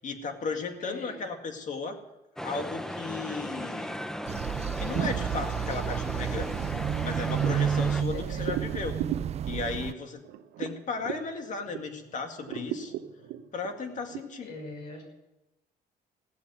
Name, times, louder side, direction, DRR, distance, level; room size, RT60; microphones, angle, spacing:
voice 1, 0.0-2.0 2.4-4.0 4.8-6.6 7.0-9.0 9.5-10.2 10.6-12.9 13.5-14.5, left 4 dB, 45° left, 5 dB, 2.2 m, -35 dB
voice 2, 0.8-1.2 8.1-8.7 14.4-15.0, left 3 dB, 85° left, 1 dB, 6.3 m, -41 dB
sound 1, 2.4-8.0, equal, 5° left, 0.7 m, -36 dB
sound 2, 4.3-9.9, right 9 dB, 40° right, 0.4 m, -30 dB
sound 3, 7.4-12.0 12.4-14.2, right 11 dB, 85° right, 0.9 m, -38 dB
16.5 x 7.2 x 9.5 m, 0.97 s
cardioid pair, 110°, 17 cm